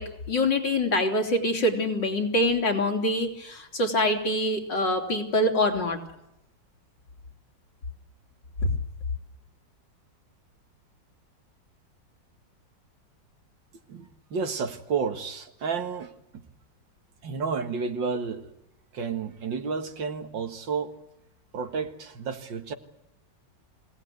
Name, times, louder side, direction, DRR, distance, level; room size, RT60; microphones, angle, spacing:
voice 1, 0.0-6.0 8.6-8.7, left 1 dB, 75° left, 2 dB, 4.5 m, -25 dB
voice 2, 13.9-16.5 17.2-18.5 18.9-21.0 21.5-22.7, right 5 dB, 90° right, 7 dB, 2.5 m, -31 dB
25.5 x 18.0 x 9.5 m, 0.85 s
omnidirectional pair, 2.0 m